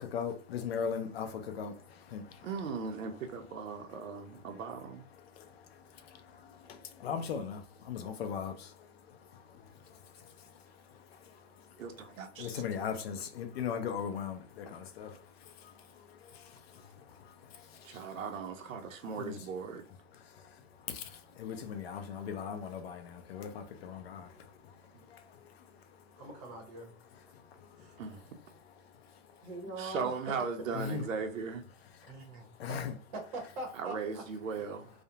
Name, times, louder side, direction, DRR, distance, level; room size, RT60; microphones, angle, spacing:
voice 1, 0.0-2.5 5.4-11.7 12.4-18.0 19.2-19.4 20.2-24.8 25.1-25.8 27.3-27.9 30.7-31.0 32.0-32.2 32.6-32.9, left 7 dB, 55° left, 0.5 m, -40 dB
voice 2, 2.4-5.0 11.8-12.6 17.8-19.8 24.9-25.0 28.0-28.2 29.8-31.7 33.7-34.9, right 5 dB, 90° right, 0.7 m, -38 dB
voice 3, 26.2-26.9 27.8-27.9 29.4-30.4 32.0-32.8 33.1-34.2, right 2 dB, 30° right, 0.8 m, -42 dB
2.4 x 2.1 x 2.7 m
hypercardioid pair, 160°, 38 cm